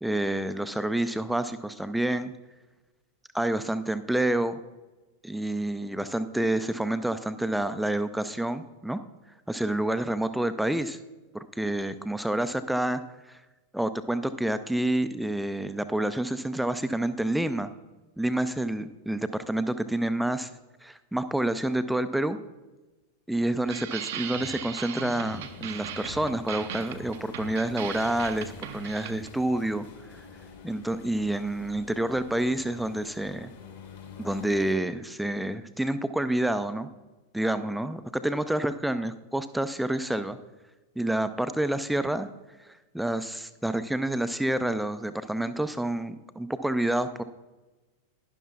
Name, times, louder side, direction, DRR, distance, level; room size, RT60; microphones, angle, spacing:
voice 1, 0.0-2.3 3.3-4.6 5.2-9.0 9.5-11.0 11.3-13.0 13.7-17.7 18.2-20.5 20.8-22.4 23.3-29.9 30.1-30.2 30.6-33.5 34.2-36.9 37.3-40.4 41.0-42.3 42.7-47.2, right 1 dB, 5° right, 12 dB, 0.5 m, -28 dB
sound 1, 23.7-29.4, right 8 dB, 55° right, 0.6 m, -38 dB
sound 2, 25.3-34.7, left 6 dB, 55° left, 2.2 m, -47 dB
11.5 x 11.0 x 2.4 m, 1.1 s
figure-of-eight pair, 90°, 0 cm